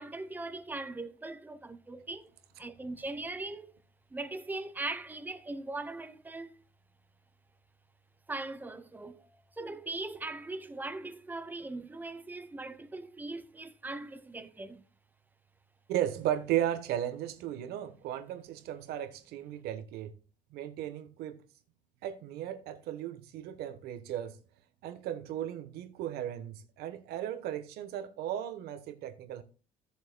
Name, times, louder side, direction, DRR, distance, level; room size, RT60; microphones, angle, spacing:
voice 1, 0.0-2.3 2.6-3.7 4.1-6.5 8.3-9.3 9.6-14.8, right 2 dB, 10° right, 0.7 m, -40 dB
voice 2, 15.9-20.1 20.5-21.4 22.0-24.4 24.8-29.4, right 11 dB, 80° right, 1.1 m, -35 dB
15.0 x 7.0 x 2.2 m
cardioid pair, 145°, 16 cm